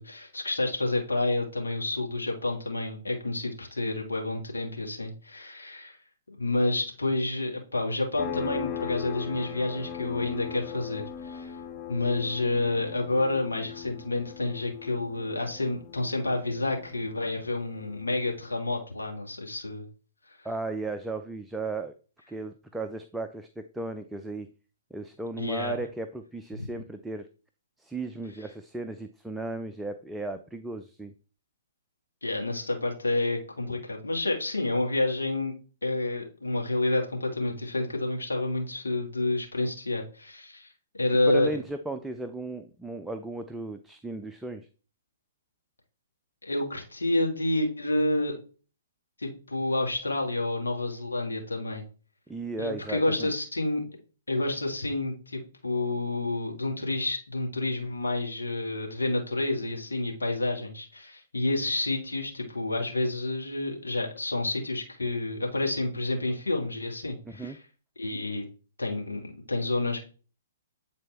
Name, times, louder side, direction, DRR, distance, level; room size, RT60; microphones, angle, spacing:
voice 1, 0.0-6.0 6.3-11.6 11.9-19.9 20.4-20.5 25.4-25.8 26.6-26.7 32.2-35.5 35.8-41.6 46.4-48.3 49.2-51.8 52.6-53.8 54.3-67.5 68.0-68.4 68.8-70.0, left 2 dB, 85° left, 1 dB, 1.8 m, -29 dB
sound 1, 8.2-18.5, left 9 dB, 35° left, 0.6 m, -39 dB
voice 2, 20.4-21.9 22.3-24.5 24.9-27.3 27.8-31.1 41.3-44.7 52.3-53.3 67.3-67.6, right 2 dB, 5° right, 6 dB, 0.4 m, -35 dB
8.5 x 4.1 x 3.4 m, 0.37 s
figure-of-eight pair, 125°, 0 cm